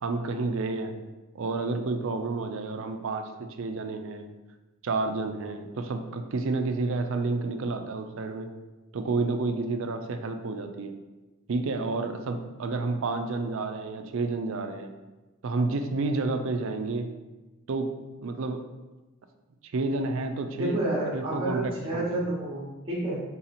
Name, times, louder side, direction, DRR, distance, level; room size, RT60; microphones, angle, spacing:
voice 1, 0.0-1.0 1.3-4.3 4.8-8.5 8.9-10.9 11.5-14.9 15.4-17.1 17.7-18.6 19.6-20.8 21.1-22.2, right 3 dB, 60° right, 7 dB, 0.4 m, -30 dB
voice 2, 20.6-23.2, right 1 dB, 25° right, -6 dB, 0.8 m, -29 dB
3.8 x 2.9 x 4.1 m, 1.1 s
head